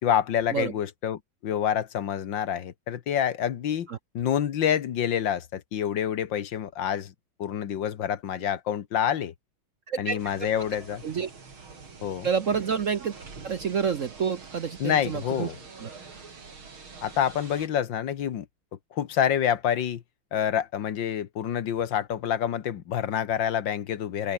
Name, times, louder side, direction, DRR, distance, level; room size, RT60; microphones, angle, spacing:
voice 1, 0.0-3.9 4.1-7.1 7.4-9.3 10.0-11.0 12.0-12.3 14.8-15.6 17.0-18.5 18.9-20.0 20.3-24.3, left 9 dB, 65° left, 1.9 m, -27 dB
voice 2, 9.9-10.2 11.0-11.3 12.2-13.1 13.4-15.5 15.8-15.9, right 6 dB, 50° right, 1.0 m, -28 dB
sound 1, 10.2-17.7, right 4 dB, 85° right, 4.4 m, -46 dB
open air
omnidirectional pair, 2.2 m